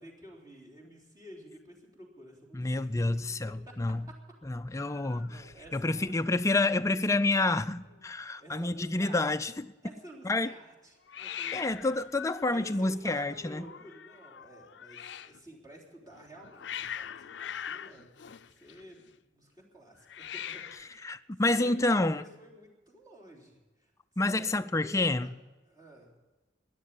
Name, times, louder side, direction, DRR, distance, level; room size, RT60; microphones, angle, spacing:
voice 1, 0.0-3.2 3.5-3.8 4.1-4.2 4.7-4.9 5.2-6.1 6.5-7.2 8.4-9.3 9.8-11.9 12.5-21.1 21.4-21.7 22.1-23.9 24.2-25.3 25.7-26.1, right 1 dB, 20° right, 3.6 m, -51 dB
voice 2, 2.5-4.1 4.5-5.4 5.7-9.7 10.2-10.5 11.5-13.7 21.0-22.3 24.2-25.3, left 2 dB, 15° left, 0.4 m, -28 dB
Hiss, 4.8-6.1 6.4-6.8 7.1-7.2 7.4-8.1 11.1-15.4 16.1-19.1 20.0-21.0, left 9 dB, 70° left, 0.5 m, -43 dB
13.0 x 10.5 x 9.8 m
head